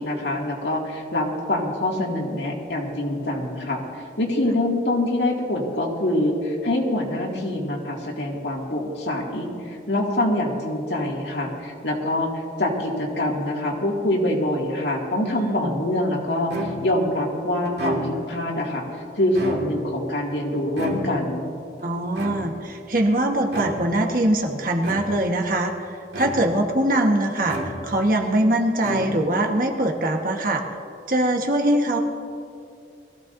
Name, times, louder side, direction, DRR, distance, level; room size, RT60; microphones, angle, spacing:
voice 1, 0.0-3.8 4.2-18.8 19.1-21.5, left 1 dB, 75° left, -1 dB, 2.2 m, -25 dB
voice 2, 15.3-15.8 21.8-25.7 26.1-30.6 31.1-32.0, right 1 dB, 50° right, 2 dB, 1.3 m, -22 dB
sound 1, 16.5-17.1 17.6-18.4 19.2-20.0 20.8-21.4 22.1-22.8 23.5-24.0 24.8-25.4 26.1-26.7 27.4-28.1 28.8-29.5, right 1 dB, 70° right, 2.1 m, -31 dB
21.5 x 15.0 x 2.7 m, 2.5 s
head